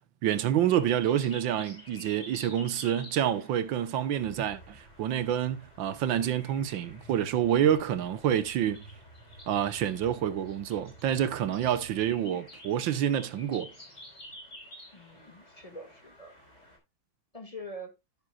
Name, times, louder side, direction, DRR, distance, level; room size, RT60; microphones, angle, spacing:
voice 1, 0.2-8.8 9.5-13.7, right 10 dB, 80° right, 1.6 m, -28 dB
sound 1, 0.7-16.8, left 1 dB, 35° left, 5.4 m, -51 dB
sound 2, 4.2-12.1, right 1 dB, 65° left, 6.1 m, -53 dB
voice 2, 14.9-16.3 17.3-17.9, equal, 20° left, 1.9 m, -44 dB
14.5 x 7.6 x 2.3 m
omnidirectional pair, 2.0 m